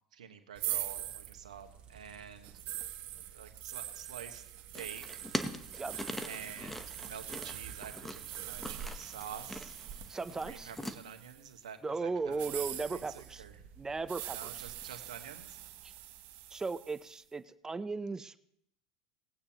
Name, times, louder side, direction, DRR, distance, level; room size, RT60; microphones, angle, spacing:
voice 1, 0.1-2.6 3.2-4.4 4.7-5.0 6.3-9.8 10.3-13.6 14.3-15.6, right 7 dB, 90° right, 6 dB, 1.3 m, -48 dB
sound 1, 0.6-11.5 12.3-17.1, right 13 dB, 55° right, 0.9 m, -43 dB
sound 2, 1.6-7.9, right 5 dB, 35° right, 1.9 m, -58 dB
sound 3, 4.7-11.0, left 1 dB, 5° left, 1.0 m, -43 dB
voice 2, 10.1-10.7 11.8-13.4 13.8-14.7 15.8-15.9 16.5-18.4, right 4 dB, 15° right, 13 dB, 0.6 m, -37 dB
19.0 x 8.5 x 3.0 m, 0.74 s
hypercardioid pair, 95°, 4 cm